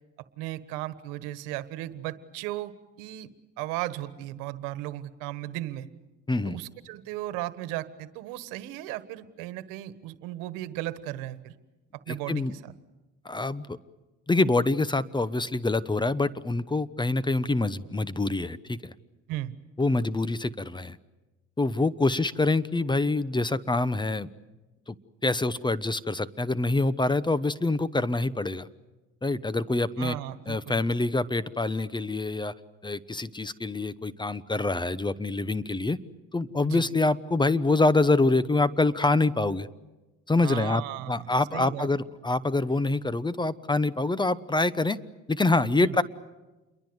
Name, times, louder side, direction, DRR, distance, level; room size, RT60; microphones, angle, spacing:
voice 1, 0.4-2.7 3.0-3.3 3.6-5.9 6.4-11.5 12.1-12.7 19.3-19.5 30.0-30.8 36.6-36.8 40.4-41.9 45.8-46.0, right 15 dB, 90° right, 13 dB, 1.4 m, -36 dB
voice 2, 6.3-6.6 12.1-12.5 13.2-13.8 14.3-18.9 19.8-21.0 21.6-24.3 24.9-25.0 25.2-28.7 29.2-30.1 30.5-32.5 32.8-36.0 36.3-39.7 40.3-40.8 41.1-45.0 45.3-46.0, left 2 dB, 15° left, 17 dB, 0.9 m, -25 dB
28.5 x 22.5 x 8.0 m, 1.1 s
supercardioid pair, 95°, 32 cm